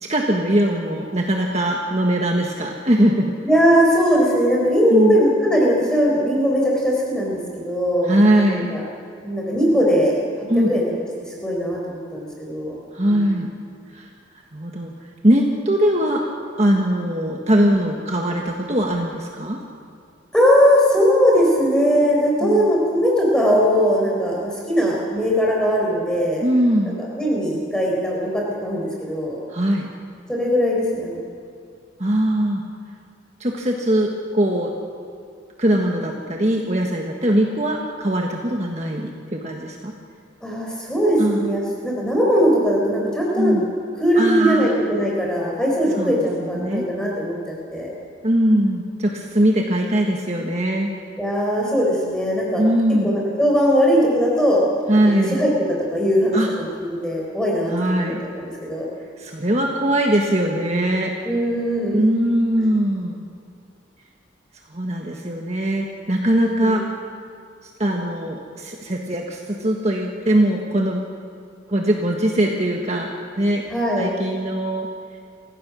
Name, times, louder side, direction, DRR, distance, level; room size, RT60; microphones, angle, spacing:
voice 1, 0.0-3.4 4.9-5.2 8.0-8.7 10.5-10.7 12.9-13.5 13.9-14.1 14.5-14.9 15.2-16.2 16.6-19.6 22.4-22.7 26.4-26.9 29.5-29.9 32.0-32.6 33.4-34.7 35.6-39.9 41.2-41.4 43.4-43.6 44.2-44.7 46.0-46.1 46.4-46.8 48.2-50.9 52.6-53.1 54.9-55.5 56.3-56.5 57.7-58.2 59.2-61.1 61.9-63.2 64.7-66.8 67.6-71.0 71.7-73.6 74.0-74.9, right 1 dB, 35° right, 0 dB, 1.5 m, -21 dB
voice 2, 3.4-8.8 9.2-10.1 10.7-10.8 11.4-12.7 13.0-13.4 20.3-26.4 27.0-29.4 30.3-31.2 40.4-43.5 44.0-47.9 51.2-52.6 53.0-54.6 54.9-55.5 55.9-57.7 58.0-58.8 61.2-62.0 66.3-66.8 73.7-74.1, equal, 5° left, -3 dB, 4.6 m, -20 dB
27.5 x 16.0 x 6.3 m, 2.3 s
head